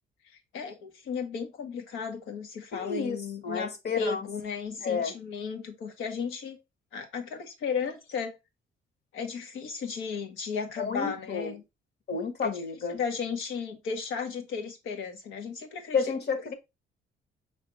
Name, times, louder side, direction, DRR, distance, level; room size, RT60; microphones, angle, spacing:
voice 1, 0.5-6.6 6.9-8.3 9.1-11.6 12.4-12.6 12.9-16.0, left 6 dB, 90° left, 1.2 m, -34 dB
voice 2, 2.7-4.3 4.8-5.1 10.8-11.6 12.1-13.0 15.9-16.5, left 5 dB, 55° left, 1.2 m, -31 dB
5.2 x 3.3 x 3.1 m
cardioid pair, 90°, 20 cm